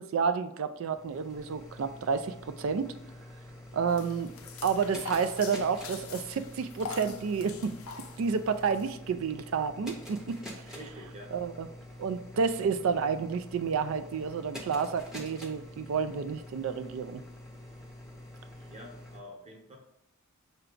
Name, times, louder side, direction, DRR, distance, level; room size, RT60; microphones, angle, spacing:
voice 1, 0.0-2.9 3.7-4.3 4.6-7.8 8.2-10.4 11.3-11.7 12.0-17.2, right 6 dB, 65° right, 10 dB, 0.3 m, -30 dB
sound 1, 0.7-19.2, left 1 dB, ahead, 0.7 m, -47 dB
sound 2, 3.9-8.9, left 5 dB, 75° left, 0.5 m, -44 dB
voice 2, 10.7-11.3 18.7-19.8, equal, 30° right, 0 dB, 0.9 m, -47 dB
5.8 x 2.2 x 3.7 m, 0.82 s
head